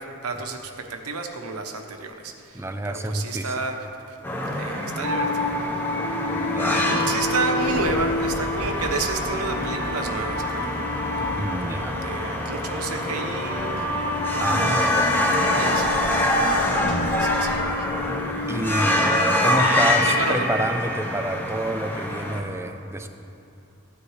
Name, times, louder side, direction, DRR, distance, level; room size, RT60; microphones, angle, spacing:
voice 1, 0.0-4.2 4.5-5.5 6.8-10.8 12.0-13.9 15.5-15.9 17.2-17.9 19.6-20.4, right 3 dB, 85° right, 4 dB, 1.0 m, -30 dB
voice 2, 2.5-3.6 6.3-6.9 11.4-12.0 14.4-15.2 18.5-23.1, right 1 dB, 10° right, 7 dB, 0.5 m, -28 dB
sound 1, 4.2-22.4, left 1 dB, 10° left, 0.9 m, -25 dB
sound 2, 5.0-18.6, left 2 dB, 70° left, 2.7 m, -30 dB
Sliding door, 7.1-12.0 13.6-18.5, equal, 55° left, 2.1 m, -38 dB
15.5 x 9.5 x 3.2 m, 2.9 s
head